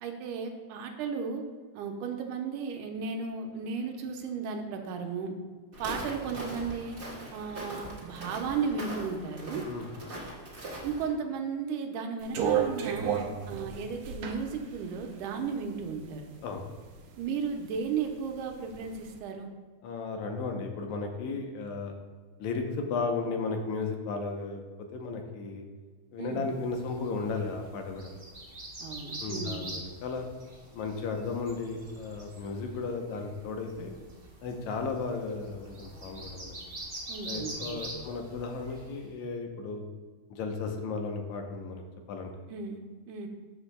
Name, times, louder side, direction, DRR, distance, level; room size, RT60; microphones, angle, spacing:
voice 1, 0.0-1.4 1.7-5.3 5.8-7.0 7.3-9.6 10.8-13.1 13.5-16.3 17.2-19.5 26.2-26.5 28.8-29.6 37.1-37.8 42.5-42.8 43.1-43.3, right 5 dB, 90° right, 3 dB, 2.3 m, -34 dB
Walk footsteps, 5.7-11.1, right 1 dB, 55° right, 0.6 m, -41 dB
sound 1, 12.2-16.2 16.6-17.6 18.0-19.0, right 8 dB, 70° right, 1.8 m, -32 dB
voice 2, 19.8-21.9 22.4-24.6 24.9-25.6 26.1-28.1 29.2-30.3 30.7-33.9 34.4-36.6 37.3-39.8 40.3-41.8 42.1-42.3, left 4 dB, 75° left, 3 dB, 2.1 m, -34 dB
sound 2, 26.6-39.0, right 1 dB, 25° right, 1.0 m, -44 dB
13.0 x 7.2 x 2.2 m, 1.5 s
omnidirectional pair, 3.6 m